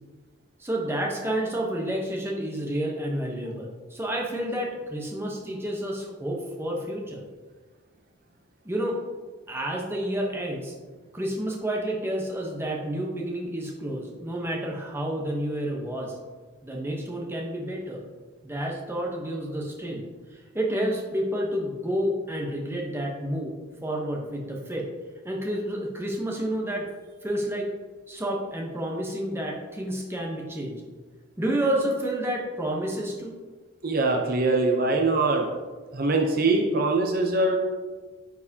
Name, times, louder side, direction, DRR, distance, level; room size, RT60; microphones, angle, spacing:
voice 1, 0.6-7.2 8.6-9.0 9.5-10.7 11.1-16.2 16.6-18.0 18.4-20.0 20.3-23.6 23.8-24.9 25.2-26.8 27.2-27.7 28.1-30.8 31.4-33.4, right 1 dB, 10° right, -1 dB, 0.9 m, -30 dB
voice 2, 33.8-35.4 35.9-37.6, right 2 dB, 45° right, 2 dB, 0.6 m, -23 dB
9.6 x 4.7 x 2.8 m, 1.4 s
head